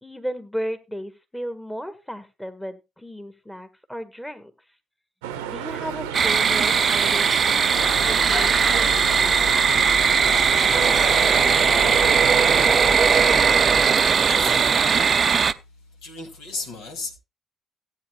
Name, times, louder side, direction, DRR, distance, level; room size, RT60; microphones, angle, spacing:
voice 1, 0.0-4.5 5.4-9.5, equal, 5° left, 1.6 m, -35 dB
sound 1, 5.2-12.6, right 9 dB, 75° right, 0.8 m, -32 dB
sound 2, 6.1-15.5, right 6 dB, 40° right, 0.6 m, -19 dB
sound 3, 7.7-13.9, left 3 dB, 45° left, 6.6 m, -33 dB
voice 2, 13.5-15.2 16.0-17.2, left 3 dB, 65° left, 2.3 m, -36 dB
17.5 x 9.0 x 2.3 m
figure-of-eight pair, 45°, 0 cm